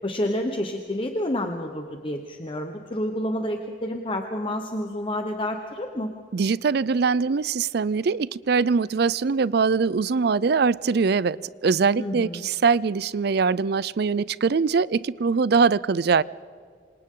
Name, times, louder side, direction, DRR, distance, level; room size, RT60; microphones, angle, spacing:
voice 1, 0.0-6.1 12.0-12.5, left 1 dB, 30° left, 1.1 m, -29 dB
voice 2, 6.3-16.2, right 5 dB, 60° right, 0.4 m, -22 dB
27.5 x 26.0 x 3.8 m
head